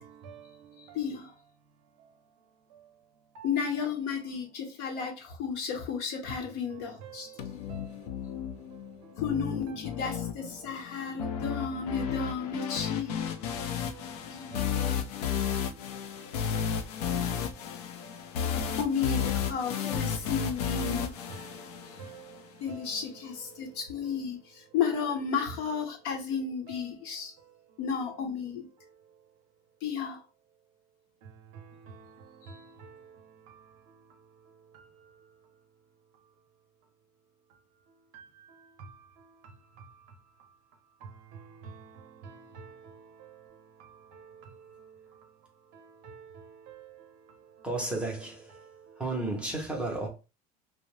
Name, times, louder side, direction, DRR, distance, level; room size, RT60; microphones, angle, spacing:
voice 1, 0.8-1.3 3.4-7.4 9.2-13.2 14.3-14.6 18.8-21.1 22.6-27.3 27.8-28.7 29.8-30.2 32.4-32.5, left 6 dB, 60° left, 0.9 m, -33 dB
sound 1, 7.4-22.4, left 8 dB, 90° left, 0.5 m, -33 dB
voice 2, 32.5-32.9 41.6-41.9 42.2-42.7 46.0-46.4, right 5 dB, 50° right, 0.6 m, -46 dB
voice 3, 47.6-48.6 49.0-50.1, right 2 dB, 5° right, 0.5 m, -32 dB
2.7 x 2.0 x 3.0 m
cardioid pair, 165°, 20 cm